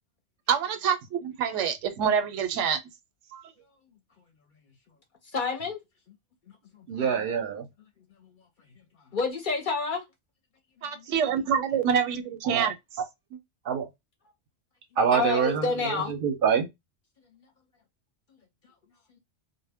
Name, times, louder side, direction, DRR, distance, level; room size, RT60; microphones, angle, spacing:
voice 1, 0.5-2.8 3.3-3.4 10.8-12.7, right 7 dB, 90° right, 0.9 m, -26 dB
voice 2, 5.3-5.8 6.1-6.2 6.7-6.9 8.2-8.4 9.1-10.0 10.8-11.1 15.1-16.2 17.3-17.5, left 4 dB, 55° left, 0.6 m, -29 dB
voice 3, 6.9-7.7 12.4-12.7 13.6-13.9 15.0-16.7, right 7 dB, 60° right, 0.6 m, -26 dB
2.1 x 2.0 x 3.3 m
omnidirectional pair, 1.2 m